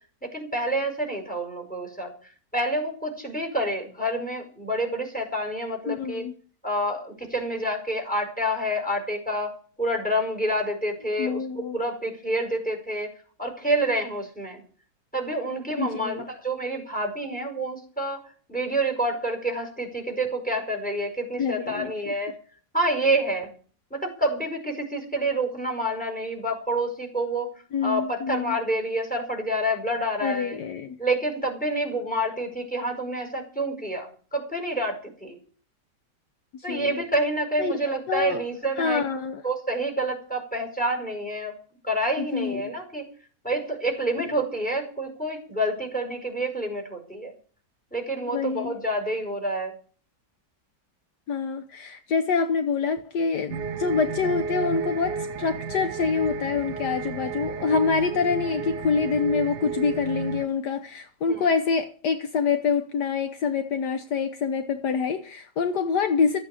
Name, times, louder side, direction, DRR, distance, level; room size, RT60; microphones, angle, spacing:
voice 1, 0.3-2.1 2.5-6.2 6.6-11.4 11.7-13.1 13.4-14.6 15.1-18.2 18.5-22.3 22.7-23.5 23.9-27.5 27.8-30.6 31.0-35.4 36.6-39.0 39.4-41.5 41.8-43.0 43.4-47.3 47.9-49.7 61.3-61.4, right 1 dB, 5° left, 5.0 m, -28 dB
voice 2, 5.9-6.3 11.2-11.8 15.8-16.2 21.4-21.9 27.7-28.6 30.2-31.0 36.5-37.0 37.6-37.7 38.1-38.4 38.8-39.4 42.2-42.7 48.3-48.8 51.3-66.4, left 5 dB, 70° left, 1.6 m, -26 dB
sound 1, 53.5-60.5, right 5 dB, 70° right, 1.4 m, -32 dB
14.5 x 8.8 x 8.4 m
omnidirectional pair, 1.9 m